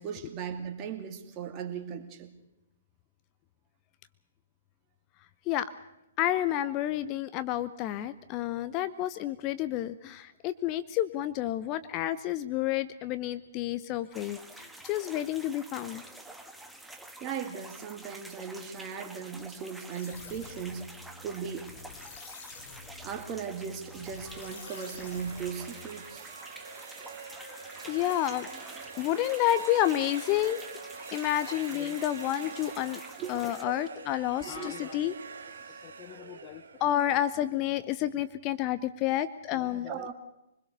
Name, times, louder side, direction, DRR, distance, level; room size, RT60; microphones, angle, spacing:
voice 1, 0.0-2.3 17.2-20.8 21.2-21.7 23.0-26.3 33.2-33.3 33.6-33.8 34.4-34.7 39.9-40.1, right 7 dB, 30° right, 5 dB, 2.4 m, -38 dB
voice 2, 6.2-16.0 27.4-28.5 29.0-30.6 31.1-33.0 33.3-35.1 35.8-40.1, left 12 dB, 30° left, 13 dB, 0.8 m, -30 dB
sound 1, 14.1-33.6, right 1 dB, 5° right, 1.4 m, -48 dB
sound 2, 19.9-26.2, left 5 dB, 50° left, 3.7 m, -49 dB
sound 3, 24.0-37.8, right 5 dB, 60° right, 1.9 m, -45 dB
24.5 x 21.0 x 6.7 m, 0.89 s
figure-of-eight pair, 120°, 0 cm